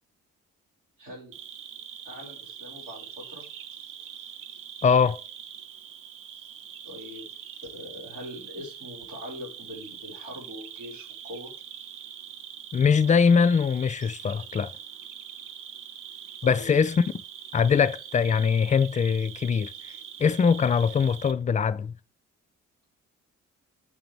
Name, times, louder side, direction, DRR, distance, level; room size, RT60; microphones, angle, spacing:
voice 1, 1.0-1.3 2.0-3.5 6.8-7.3 7.7-11.5 16.4-16.8, left 1 dB, 85° right, 2.6 m, -42 dB
Cricket, 1.3-21.3, right 9 dB, 55° right, 0.7 m, -43 dB
voice 2, 4.8-5.2 12.7-14.7 16.4-17.0 17.5-19.7 20.2-21.9, left 6 dB, 20° left, 0.3 m, -22 dB
9.5 x 3.9 x 4.6 m
hypercardioid pair, 40°, 38 cm